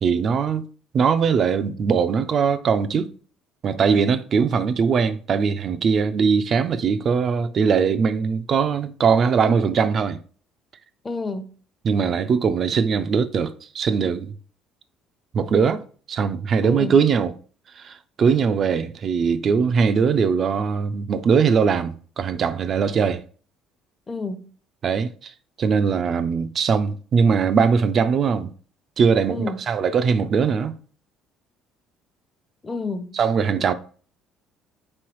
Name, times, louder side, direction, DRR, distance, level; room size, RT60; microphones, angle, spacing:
voice 1, 0.0-0.7 0.9-3.1 3.6-10.2 11.8-14.3 15.3-15.8 16.1-17.3 17.8-23.2 24.8-25.3 25.6-28.5 29.0-30.8 33.1-33.7, right 6 dB, 50° right, 0.5 m, -21 dB
voice 2, 11.0-11.5 16.6-16.9 24.1-24.5 29.3-29.6 32.6-33.2, left 3 dB, 25° left, 0.7 m, -30 dB
3.4 x 3.2 x 4.6 m
supercardioid pair, 85°, 0 cm